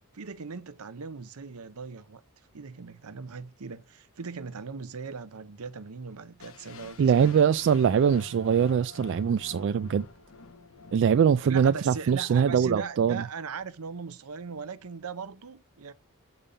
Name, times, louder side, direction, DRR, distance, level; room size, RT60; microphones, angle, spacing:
voice 1, 0.1-2.2 2.5-7.3 11.4-15.9, right 5 dB, 80° right, 0.8 m, -39 dB
sound 1, 6.4-12.4, left 4 dB, 65° left, 1.1 m, -49 dB
voice 2, 7.0-10.1 10.9-13.2, right 7 dB, 55° right, 0.3 m, -23 dB
7.0 x 5.3 x 5.3 m
head